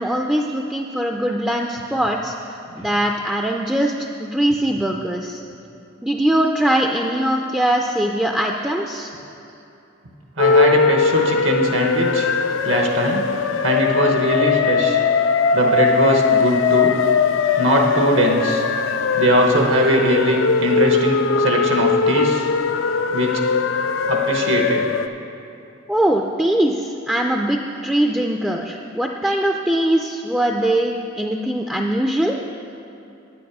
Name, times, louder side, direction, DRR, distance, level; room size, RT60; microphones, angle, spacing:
voice 1, 0.0-2.3 2.8-5.4 6.0-9.1 25.9-32.4, right 1 dB, 5° right, 1 dB, 0.4 m, -21 dB
sound 1, 10.4-25.1, left 5 dB, 70° left, 0.4 m, -20 dB
voice 2, 10.4-12.3 12.6-13.2 13.6-15.0 15.5-16.9 17.6-18.7 19.2-22.5 23.1-23.3 24.1-24.9, right 1 dB, 75° right, 1 dB, 1.0 m, -20 dB
9.5 x 8.7 x 4.8 m, 2.8 s
head